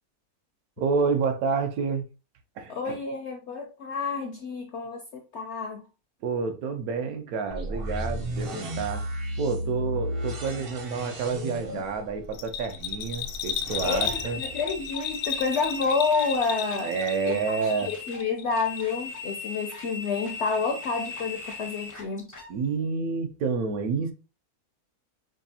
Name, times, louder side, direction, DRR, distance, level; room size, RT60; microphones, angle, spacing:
voice 1, 0.8-2.0 2.6-3.0 6.2-9.1 9.4-14.4 16.8-17.9 22.5-24.1, right 5 dB, 75° right, 1.0 m, -29 dB
voice 2, 2.7-5.9 13.8-16.9 17.3-22.3, left 4 dB, 70° left, 0.7 m, -29 dB
sound 1, 7.5-15.4, equal, 55° right, 0.7 m, -34 dB
Bell, 12.3-17.4 17.7-18.5 18.8-18.9, left 8 dB, 90° left, 1.1 m, -33 dB
sound 2, 13.8-22.5, left 4 dB, 30° left, 0.3 m, -39 dB
5.1 x 2.4 x 2.7 m
omnidirectional pair, 1.6 m